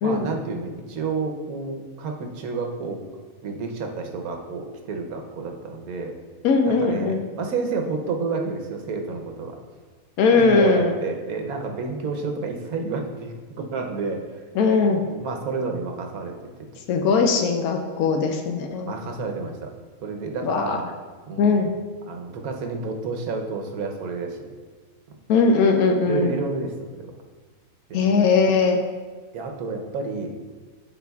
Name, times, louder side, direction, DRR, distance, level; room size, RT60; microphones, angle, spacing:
voice 1, 0.0-3.0 3.4-6.2 6.7-9.6 10.4-14.4 15.1-16.3 18.9-19.7 20.0-20.9 21.3-21.6 22.1-24.5 26.0-27.1 27.9-28.2 29.3-30.3, right 4 dB, 90° right, 3 dB, 1.3 m, -30 dB
voice 2, 6.4-7.2 10.2-10.9 14.5-15.0 16.9-18.9 20.4-20.8 21.4-21.7 25.3-26.3 27.9-28.8, left 4 dB, 90° left, 3 dB, 1.1 m, -20 dB
12.0 x 4.1 x 2.3 m, 1.4 s
omnidirectional pair, 1.5 m